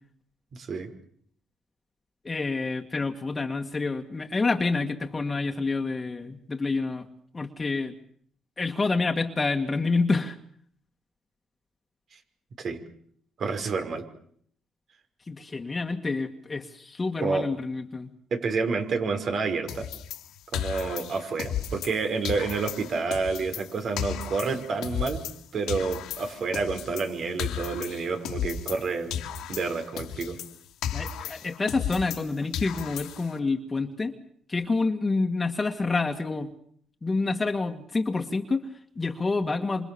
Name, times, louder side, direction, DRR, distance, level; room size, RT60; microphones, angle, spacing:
voice 1, 0.5-0.9 12.1-12.2 12.6-12.8 13.4-14.1 17.2-17.5 18.3-19.9 20.5-25.2 25.5-29.2 29.5-30.4, right 4 dB, 55° right, 7 dB, 5.5 m, -29 dB
voice 2, 2.2-7.1 7.3-7.9 8.6-10.4 15.3-18.1 30.9-34.1 34.5-36.5 37.0-39.9, left 3 dB, 25° left, 3 dB, 2.0 m, -28 dB
sound 1, 19.7-22.0 22.3-25.4 25.7-28.9 29.1-32.3 32.5-33.4, left 9 dB, 85° left, 2.7 m, -34 dB
27.5 x 27.5 x 7.1 m, 0.63 s
cardioid pair, 90°, 0 cm